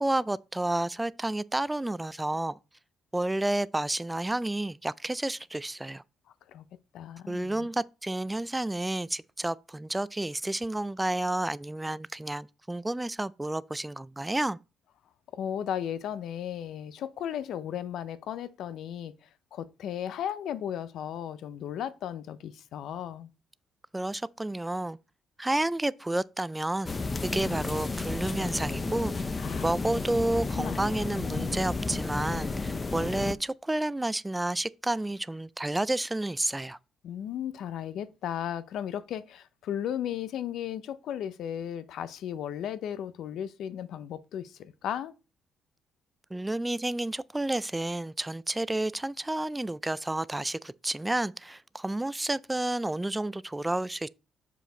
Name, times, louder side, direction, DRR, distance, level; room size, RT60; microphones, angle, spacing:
voice 1, 0.0-2.6 3.1-6.0 7.3-14.6 23.9-25.0 25.4-26.9 27.2-29.1 29.6-36.8 46.3-54.1, right 1 dB, 10° right, 0.3 m, -30 dB
voice 2, 6.9-7.7 15.3-19.1 19.5-23.3 29.4-29.7 30.6-31.7 37.0-45.1, left 10 dB, 75° left, 0.6 m, -35 dB
sound 1, 26.9-33.3, left 3 dB, 30° left, 0.6 m, -32 dB
6.9 x 5.0 x 3.8 m
cardioid pair, 90°, 0 cm